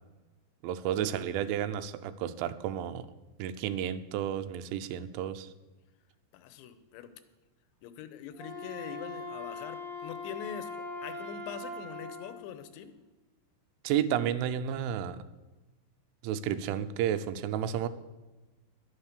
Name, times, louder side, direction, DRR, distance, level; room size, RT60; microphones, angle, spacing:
voice 1, 0.6-3.1 3.4-5.5 13.8-15.2 16.2-17.9, right 10 dB, 90° right, 11 dB, 3.1 m, -31 dB
voice 2, 6.3-7.1 7.8-12.9, left 9 dB, 80° left, 11 dB, 3.0 m, -44 dB
Wind instrument woodwind instrument, 8.3-12.4, left 2 dB, 30° left, 1.6 m, -41 dB
11.5 x 10.5 x 6.6 m, 1.2 s
omnidirectional pair, 5.4 m